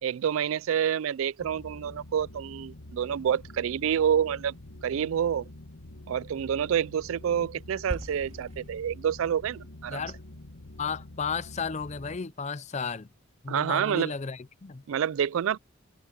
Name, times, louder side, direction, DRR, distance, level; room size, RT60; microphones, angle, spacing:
voice 1, 0.0-4.5 4.8-5.5 6.1-10.0 13.5-14.1 14.9-15.6, right 8 dB, 70° right, 0.3 m, -28 dB
sound 1, 1.4-12.2, left 1 dB, 85° left, 1.7 m, -46 dB
sound 2, 7.9-12.3, equal, 30° right, 2.6 m, -44 dB
voice 2, 9.9-10.2 10.8-13.1 13.4-14.8, left 5 dB, 35° left, 0.5 m, -33 dB
head